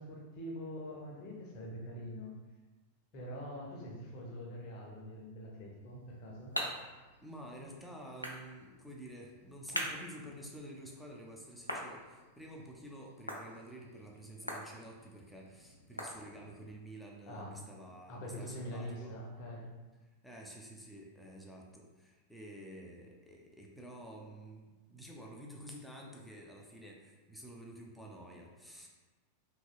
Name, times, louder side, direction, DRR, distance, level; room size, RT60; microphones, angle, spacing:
voice 1, 0.0-2.4 3.1-6.6 17.3-17.7 18.1-19.7, equal, 45° left, -1 dB, 0.6 m, -44 dB
sound 1, 5.8-16.7, equal, 85° left, 0.3 m, -45 dB
voice 2, 7.2-19.1 20.2-28.9, right 1 dB, ahead, -2 dB, 0.4 m, -50 dB
2.9 x 2.7 x 2.3 m, 1.2 s
figure-of-eight pair, 90°, 0 cm